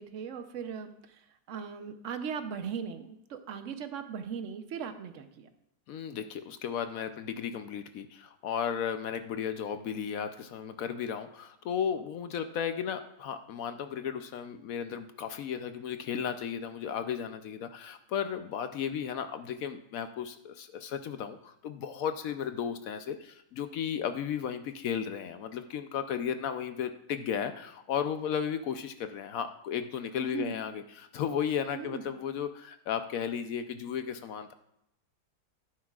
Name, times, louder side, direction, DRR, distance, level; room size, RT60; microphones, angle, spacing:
voice 1, 0.0-5.5 30.2-30.6 31.7-32.1, right 7 dB, 60° right, 9 dB, 0.9 m, -39 dB
voice 2, 5.9-34.5, left 8 dB, 65° left, 9 dB, 0.9 m, -34 dB
11.0 x 9.7 x 2.4 m, 0.79 s
omnidirectional pair, 1.8 m